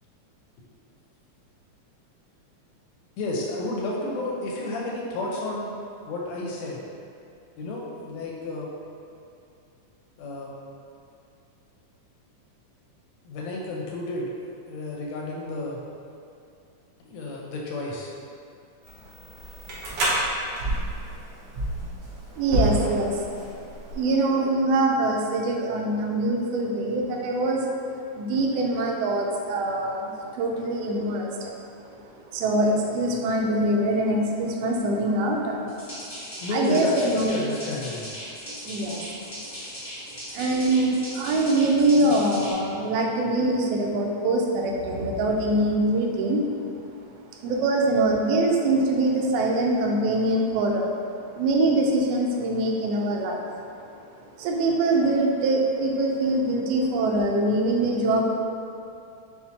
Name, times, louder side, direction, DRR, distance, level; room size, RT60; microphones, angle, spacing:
voice 1, 3.2-5.7 6.1-6.8 7.6-8.7 10.2-10.5 13.2-14.3 14.7-15.8 17.0-18.1 36.4-38.1, left 2 dB, 80° left, -3 dB, 1.6 m, -31 dB
sound 1, 18.8-24.1, right 1 dB, 65° right, 1.6 m, -29 dB
voice 2, 22.4-23.2 23.9-27.9 28.1-31.5 31.9-36.1 36.5-37.4 38.5-39.5 40.1-46.8 47.4-50.9 51.3-53.4 54.4-58.4, right 2 dB, 85° right, 0 dB, 1.4 m, -24 dB
sound 2, 35.7-42.5, equal, 45° left, 0.7 m, -38 dB
5.8 x 2.1 x 4.1 m, 2.6 s
omnidirectional pair, 3.4 m